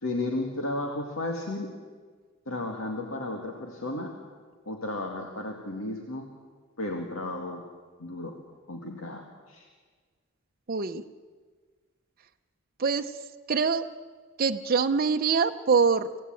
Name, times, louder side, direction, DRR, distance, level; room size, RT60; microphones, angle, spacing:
voice 1, 0.0-1.7 2.5-4.1 4.7-6.3 6.8-7.6 8.0-8.4 8.7-9.7, left 2 dB, 75° left, 2 dB, 2.3 m, -33 dB
voice 2, 10.7-11.0 12.8-13.1 13.5-13.9 14.4-16.1, right 5 dB, 45° right, 5 dB, 0.8 m, -24 dB
26.0 x 16.5 x 9.0 m, 1.5 s
head